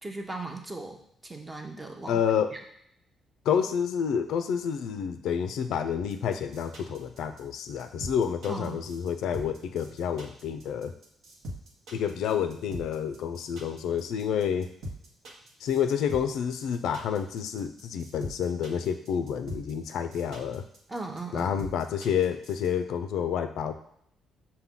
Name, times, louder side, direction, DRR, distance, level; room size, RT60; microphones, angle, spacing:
voice 1, 0.0-2.2 2.5-2.6 8.5-8.8 20.9-21.6, right 2 dB, 20° right, 2 dB, 0.6 m, -38 dB
voice 2, 2.1-2.5 3.5-10.9 11.9-14.7 15.6-20.6 21.3-23.7, left 8 dB, 80° left, 9 dB, 0.3 m, -29 dB
sound 1, 6.1-22.7, equal, 80° right, 1.0 m, -41 dB
5.7 x 2.2 x 3.6 m, 0.71 s
cardioid pair, 90°, 0 cm